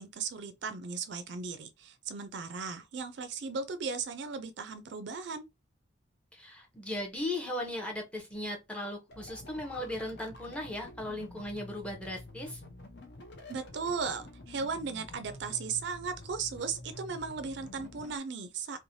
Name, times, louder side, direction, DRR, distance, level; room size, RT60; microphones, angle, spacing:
voice 1, 0.0-5.5 13.5-18.8, right 5 dB, 60° right, 0.4 m, -36 dB
voice 2, 6.3-12.6, left 1 dB, 5° left, 0.7 m, -37 dB
sound 1, 9.1-18.2, left 2 dB, 60° left, 0.6 m, -49 dB
3.1 x 2.1 x 2.6 m
head